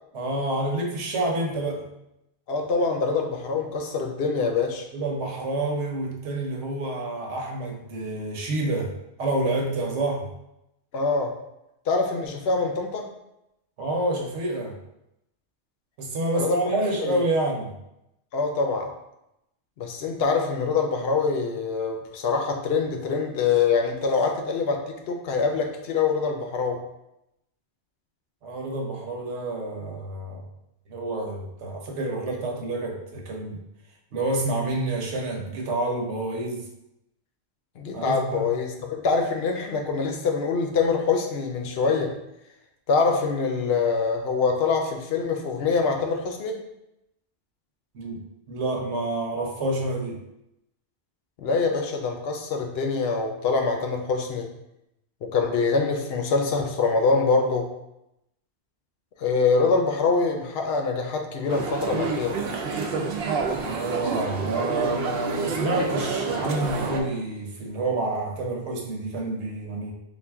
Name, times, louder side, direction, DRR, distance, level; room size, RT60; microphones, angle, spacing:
voice 1, 0.1-1.9 4.9-8.9 9.2-10.3 13.8-14.7 16.0-17.7 28.4-30.5 30.9-33.6 34.1-36.6 37.9-38.5 47.9-50.2 63.6-69.9, right 2 dB, 80° right, 0 dB, 1.1 m, -28 dB
voice 2, 2.5-4.9 10.9-11.3 11.9-13.1 16.3-16.6 17.0-17.2 18.3-18.9 19.8-26.8 37.8-42.1 42.9-46.6 51.4-54.5 55.2-57.7 59.2-62.4, left 4 dB, 65° left, 3 dB, 0.8 m, -24 dB
sound 1, 61.5-67.0, right 4 dB, 65° right, 0.7 m, -28 dB
3.7 x 2.5 x 3.4 m, 0.86 s
omnidirectional pair, 1.2 m